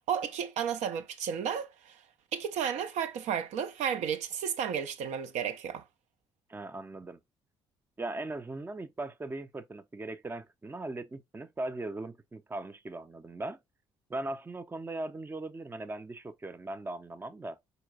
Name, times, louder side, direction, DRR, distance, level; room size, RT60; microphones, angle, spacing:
voice 1, 0.0-2.0 2.3-5.8, right 8 dB, 55° right, 0.6 m, -33 dB
voice 2, 6.5-7.2 8.0-13.6 14.1-17.6, right 2 dB, 15° right, 0.6 m, -39 dB
4.5 x 3.9 x 2.4 m
figure-of-eight pair, 45°, 14 cm